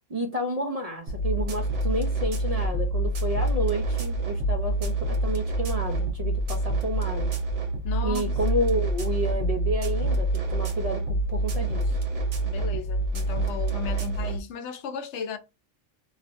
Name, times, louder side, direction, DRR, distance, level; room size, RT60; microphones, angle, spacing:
voice 1, 0.1-7.3 8.0-12.0, right 1 dB, 40° right, 0.6 m, -30 dB
sound 1, 1.1-14.4, right 1 dB, 75° right, 1.3 m, -27 dB
voice 2, 7.8-8.3 12.4-15.4, left 6 dB, 75° left, 0.9 m, -35 dB
3.2 x 2.7 x 2.5 m
omnidirectional pair, 1.2 m